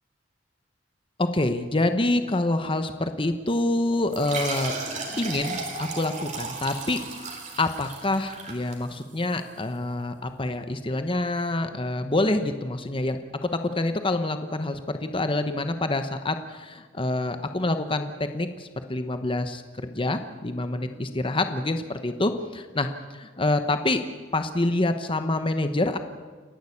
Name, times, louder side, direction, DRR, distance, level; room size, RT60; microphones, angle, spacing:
voice 1, 1.2-4.7 5.2-7.0 7.6-24.0 24.3-26.0, left 2 dB, 30° left, 8 dB, 1.0 m, -26 dB
sound 1, 4.1-9.3, right 3 dB, 40° right, 3.6 m, -34 dB
29.5 x 11.5 x 8.6 m, 1.5 s
head